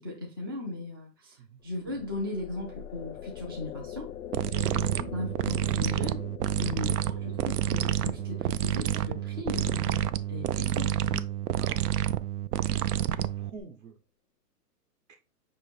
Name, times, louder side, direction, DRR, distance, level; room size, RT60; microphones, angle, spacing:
voice 1, 0.0-4.1 4.6-6.2 6.6-11.3, left 2 dB, 15° right, 0.3 m, -37 dB
sound 1, 1.6-13.1, left 10 dB, 60° left, 0.5 m, -45 dB
sound 2, 4.3-13.6, right 11 dB, 70° right, 0.5 m, -29 dB
voice 2, 11.6-11.9 12.6-14.0 15.1-15.2, right 4 dB, 55° right, 1.1 m, -47 dB
5.3 x 2.8 x 3.3 m
hypercardioid pair, 145°, 48 cm